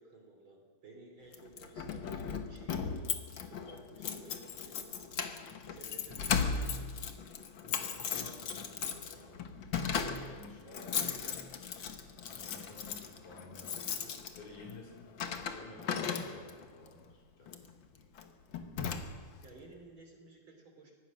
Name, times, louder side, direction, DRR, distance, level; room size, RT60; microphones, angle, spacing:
voice 1, 0.0-3.1 3.4-5.0 5.7-7.1 10.6-11.4 19.4-20.9, right 3 dB, 40° right, 2 dB, 3.8 m, -55 dB
Keys jangling, 1.3-16.7 17.5-17.7 18.2-18.3 18.5-19.4, left 6 dB, 55° left, 1.4 m, -37 dB
voice 2, 7.6-9.5 10.2-10.9 12.3-14.1 14.4-15.0 15.3-17.5 17.9-18.0, left 3 dB, 70° left, -2 dB, 6.1 m, -53 dB
24.5 x 18.0 x 6.2 m, 1.5 s
omnidirectional pair, 3.7 m